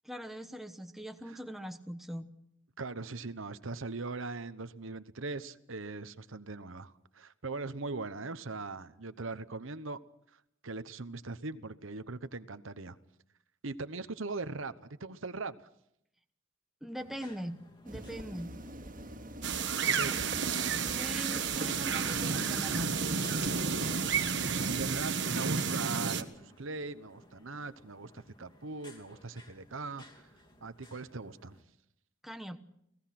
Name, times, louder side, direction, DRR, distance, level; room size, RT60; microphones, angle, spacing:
voice 1, 0.0-2.3 16.8-18.5 20.0-20.2 20.9-22.9 32.2-32.6, equal, ahead, 1.1 m, -42 dB
voice 2, 2.8-10.0 10.6-13.0 13.6-15.7 19.8-20.5 24.5-30.3 30.6-31.6, right 3 dB, 70° right, 1.0 m, -40 dB
sound 1, 17.0-31.6, left 1 dB, 20° left, 2.9 m, -56 dB
sound 2, 17.9-25.2, right 1 dB, 40° right, 2.3 m, -45 dB
sound 3, 19.4-26.2, right 6 dB, 55° right, 1.4 m, -31 dB
29.5 x 18.5 x 6.0 m
head